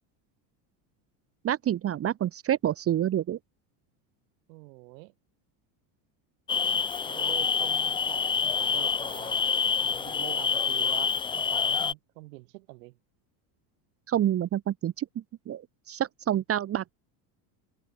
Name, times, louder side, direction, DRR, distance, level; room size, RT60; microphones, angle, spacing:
voice 1, 1.4-3.4 14.1-15.1 15.5-15.6 15.9-16.9, right 11 dB, 30° right, 1.1 m, -27 dB
voice 2, 4.5-5.1 6.6-9.4 9.8-13.0, right 23 dB, 90° right, 5.0 m, -45 dB
sound 1, 6.5-11.9, left 6 dB, 10° left, 0.4 m, -27 dB
cardioid pair, 145°, 48 cm